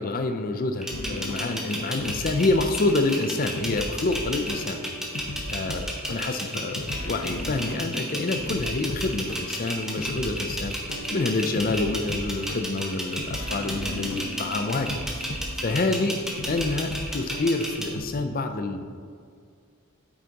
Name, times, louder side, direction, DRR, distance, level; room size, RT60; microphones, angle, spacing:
voice 1, 0.0-4.8 5.5-10.8 11.1-15.0 15.6-16.2 16.5-18.8, left 2 dB, 40° left, 7 dB, 0.5 m, -27 dB
sound 1, 0.8-18.0, equal, ahead, 0.8 m, -33 dB
sound 2, 0.9-18.1, left 1 dB, 85° left, 0.7 m, -37 dB
8.7 x 6.3 x 2.9 m, 2.2 s
head